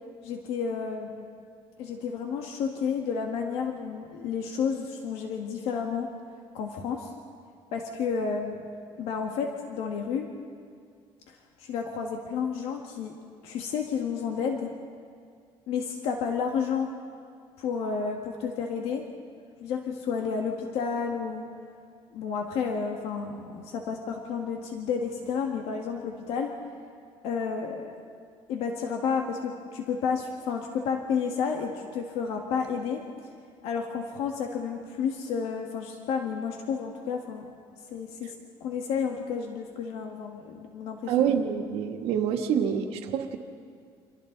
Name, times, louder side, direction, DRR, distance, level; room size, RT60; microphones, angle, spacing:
voice 1, 0.2-1.3 1.8-6.1 6.5-7.1 7.7-8.7 9.0-10.3 11.3-13.2 13.4-14.7 15.7-16.9 17.6-19.0 19.6-21.5 22.1-26.5 27.2-28.0 28.5-33.0 33.6-37.5 37.9-38.3 38.6-41.1, left 6 dB, 80° left, 2 dB, 1.9 m, -31 dB
voice 2, 41.1-43.4, right 8 dB, 75° right, 4 dB, 1.8 m, -26 dB
30.0 x 26.0 x 4.1 m, 2.2 s
cardioid pair, 170°, 10 cm